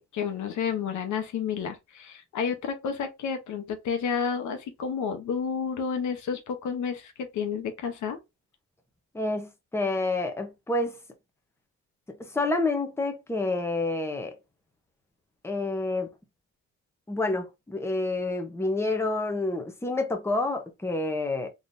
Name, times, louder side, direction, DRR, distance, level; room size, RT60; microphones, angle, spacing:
voice 1, 0.0-8.2, left 6 dB, 75° left, 1.0 m, -31 dB
voice 2, 9.1-10.9 12.3-14.4 15.4-16.1 17.1-21.5, left 2 dB, 10° left, 0.8 m, -28 dB
4.0 x 2.9 x 2.6 m
cardioid pair, 90°, 30 cm